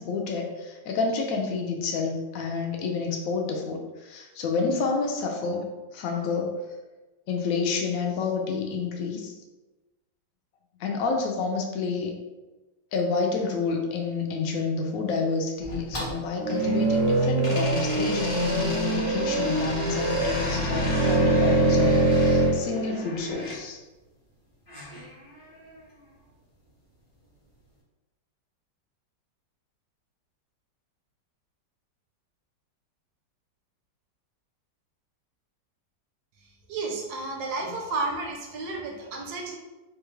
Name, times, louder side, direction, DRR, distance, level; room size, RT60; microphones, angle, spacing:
voice 1, 0.0-5.6 5.9-6.5 7.3-9.3 10.8-12.2 12.9-23.8, left 4 dB, 75° left, 2 dB, 0.8 m, -29 dB
sound 1, 15.6-17.0 17.4-23.6 24.7-25.8, equal, 50° left, 0.4 m, -35 dB
sound 2, 16.4-22.6, right 2 dB, 90° right, 1.6 m, -23 dB
voice 2, 36.7-39.6, right 3 dB, 70° right, 1 dB, 1.0 m, -32 dB
3.6 x 2.3 x 3.0 m, 1.1 s
omnidirectional pair, 1.9 m